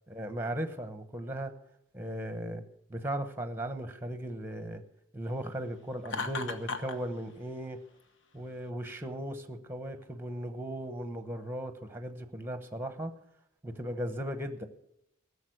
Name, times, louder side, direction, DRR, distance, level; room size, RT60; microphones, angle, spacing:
voice 1, 0.1-1.5 1.9-2.6 2.9-4.8 5.1-7.8 8.3-13.1 13.6-14.7, right 1 dB, 10° right, 9 dB, 1.0 m, -37 dB
Laughter, 6.0-7.0, left 4 dB, 60° left, 1.0 m, -35 dB
15.5 x 6.9 x 7.8 m, 0.80 s
head